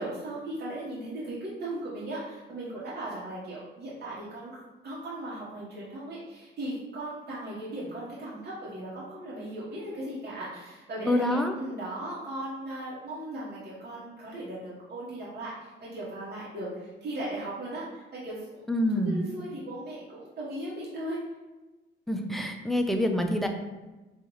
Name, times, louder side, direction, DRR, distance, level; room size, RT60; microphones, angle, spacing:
voice 1, 0.0-15.5 15.8-18.6 19.0-21.2, right 1 dB, 55° right, -7 dB, 1.0 m, -37 dB
voice 2, 11.0-11.6 18.7-19.2 22.1-23.5, left 1 dB, ahead, 4 dB, 0.4 m, -26 dB
4.0 x 2.4 x 3.0 m, 1.1 s
cardioid pair, 90°, 20 cm